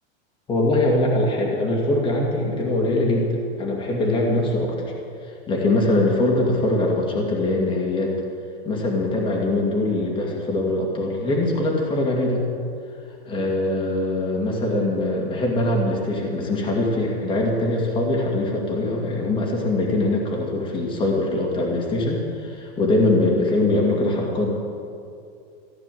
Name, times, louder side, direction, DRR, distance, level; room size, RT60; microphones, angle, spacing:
voice 1, 0.5-4.9 5.5-8.1 8.6-12.5 13.3-24.5, left 2 dB, 15° left, -1 dB, 2.1 m, -22 dB
15.5 x 9.6 x 7.8 m, 2.5 s
supercardioid pair, 160°, 32 cm